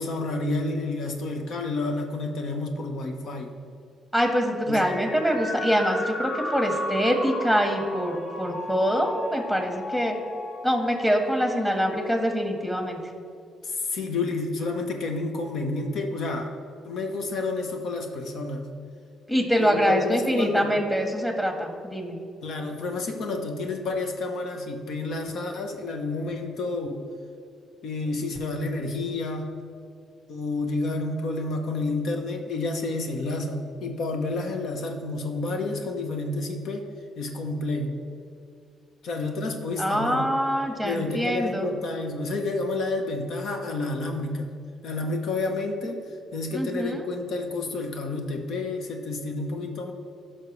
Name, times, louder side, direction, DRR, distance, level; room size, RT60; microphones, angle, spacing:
voice 1, 0.0-3.5 4.7-4.9 13.6-16.5 16.8-18.7 19.6-20.7 22.4-27.0 27.8-29.5 30.3-36.9 37.2-38.0 39.0-40.3 40.8-44.5 44.8-46.0 46.3-49.9, left 2 dB, 70° left, 4 dB, 1.1 m, -30 dB
voice 2, 4.1-10.2 10.6-13.0 19.3-22.2 39.8-41.7 46.5-47.0, equal, 10° left, 2 dB, 1.7 m, -24 dB
sound 1, 4.8-12.3, left 1 dB, 50° left, 1.4 m, -35 dB
16.0 x 5.8 x 3.3 m, 2.3 s
cardioid pair, 90°, 0 cm